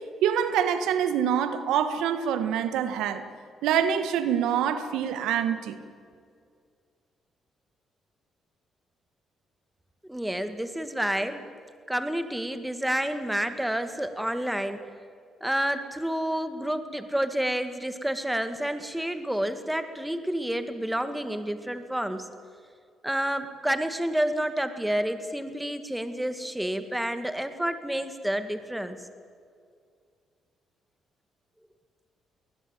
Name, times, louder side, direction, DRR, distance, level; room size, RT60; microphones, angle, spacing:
voice 1, 0.2-3.2 3.6-5.8, right 8 dB, 90° right, 10 dB, 1.5 m, -25 dB
voice 2, 10.1-11.4 11.9-14.8 15.4-22.3 23.0-29.0, right 1 dB, 5° right, 9 dB, 2.0 m, -29 dB
21.0 x 20.0 x 9.1 m, 2.2 s
cardioid pair, 90°, 0 cm